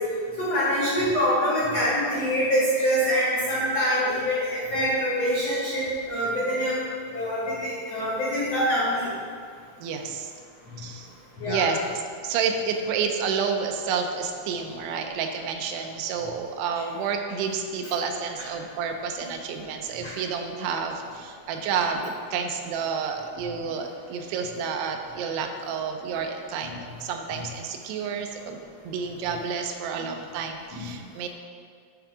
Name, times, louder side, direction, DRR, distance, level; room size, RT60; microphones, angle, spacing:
voice 1, 0.4-6.8 7.1-9.1 11.4-11.6 20.0-20.1 30.7-30.9, equal, 55° left, -8 dB, 1.8 m, -25 dB
voice 2, 9.8-10.3 10.8-11.1 11.5-31.3, right 6 dB, 85° right, 4 dB, 2.7 m, -30 dB
10.0 x 3.6 x 4.9 m, 2.2 s
omnidirectional pair, 4.8 m